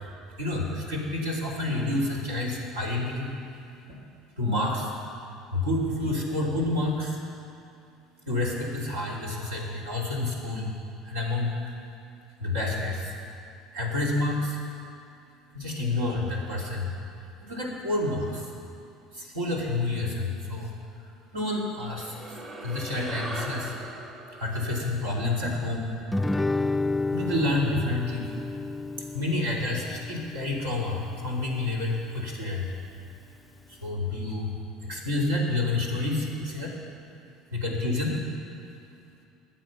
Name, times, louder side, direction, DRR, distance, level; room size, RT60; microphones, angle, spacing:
voice 1, 0.4-3.4 3.9-4.0 4.4-4.9 5.5-7.2 8.3-10.8 11.0-11.8 12.4-13.1 13.7-14.6 15.5-18.5 19.1-23.7 24.4-25.9 27.1-28.3 29.0-32.7 33.7-36.8 37.5-38.2, left 2 dB, 90° right, -3 dB, 3.1 m, -29 dB
sound 1, 21.8-26.5, right 1 dB, 40° right, 2.0 m, -40 dB
Guitar, 26.1-31.2, left 2 dB, 10° left, 0.3 m, -31 dB
21.5 x 7.5 x 5.8 m, 2.6 s
hypercardioid pair, 75°, 0 cm